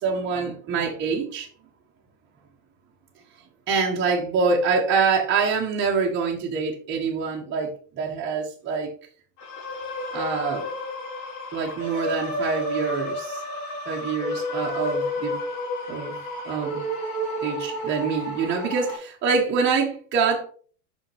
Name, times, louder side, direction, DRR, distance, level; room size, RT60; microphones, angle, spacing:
voice 1, 0.0-1.5 3.7-8.9 10.1-10.7 11.5-13.4 13.9-15.4 15.9-16.2 16.4-16.8 17.4-20.4, right 5 dB, 30° right, 1.3 m, -25 dB
sound 1, 9.4-19.0, left 1 dB, 85° left, 3.2 m, -31 dB
5.7 x 5.6 x 3.3 m
supercardioid pair, 130°, 38 cm